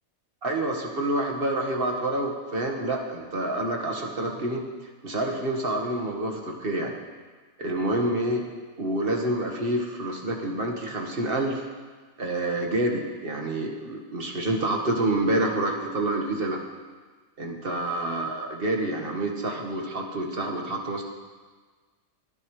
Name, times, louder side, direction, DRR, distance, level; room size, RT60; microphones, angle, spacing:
voice 1, 0.4-4.6 5.0-6.9 7.6-8.4 8.8-11.7 12.2-16.6 17.4-21.0, right 1 dB, 50° right, 0 dB, 1.9 m, -28 dB
23.0 x 9.9 x 3.3 m, 1.4 s
omnidirectional pair, 1.2 m